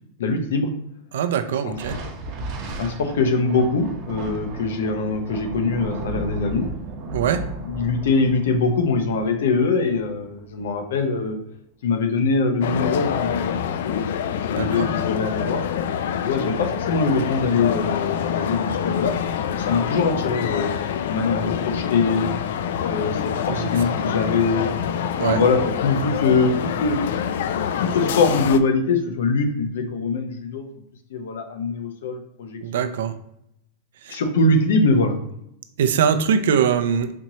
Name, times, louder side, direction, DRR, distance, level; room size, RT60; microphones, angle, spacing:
voice 1, 0.2-0.7 1.6-2.0 2.8-6.7 7.6-11.4 11.8-14.0 14.4-15.6 16.2-19.1 19.5-20.8 21.1-22.3 22.8-24.7 25.3-27.0 27.8-30.7 31.1-32.9 34.1-35.2, left 3 dB, 90° left, 6 dB, 0.7 m, -23 dB
voice 2, 1.1-2.0 7.1-7.4 14.5-14.9 23.5-23.7 25.2-25.4 32.6-33.1 34.0-34.2 35.8-37.1, right 7 dB, 80° right, 10 dB, 0.4 m, -22 dB
Thunder, 1.7-10.5, right 2 dB, 40° right, 0.8 m, -34 dB
sound 1, 12.6-28.6, left 8 dB, 70° left, 0.3 m, -26 dB
4.3 x 3.0 x 2.8 m, 0.75 s
supercardioid pair, 165°, 0 cm